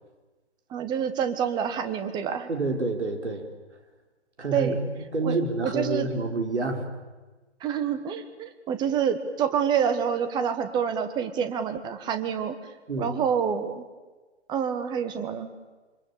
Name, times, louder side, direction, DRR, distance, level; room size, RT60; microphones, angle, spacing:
voice 1, 0.7-2.5 4.5-4.8 5.2-6.1 7.6-12.6 13.0-13.8 14.5-15.5, right 7 dB, 10° right, 10 dB, 1.4 m, -27 dB
voice 2, 2.5-3.5 4.4-6.8 12.9-13.1, right 2 dB, 75° right, 5 dB, 5.0 m, -28 dB
26.5 x 25.5 x 8.7 m, 1.2 s
figure-of-eight pair, 140°, 35 cm